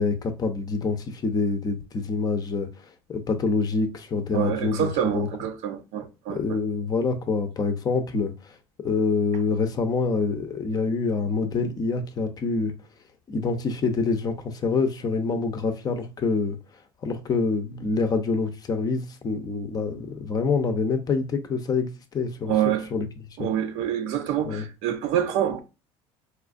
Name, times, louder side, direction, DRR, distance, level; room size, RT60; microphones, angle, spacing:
voice 1, 0.0-5.3 6.3-8.6 8.8-12.7 13.3-16.6 17.0-22.5 22.9-23.1 23.4-23.5 24.5-24.7, left 4 dB, 35° left, 0.6 m, -26 dB
voice 2, 4.3-6.6 22.5-22.9 23.4-25.6, right 10 dB, 70° right, 0.6 m, -26 dB
4.3 x 2.3 x 2.5 m
supercardioid pair, 110°, 12 cm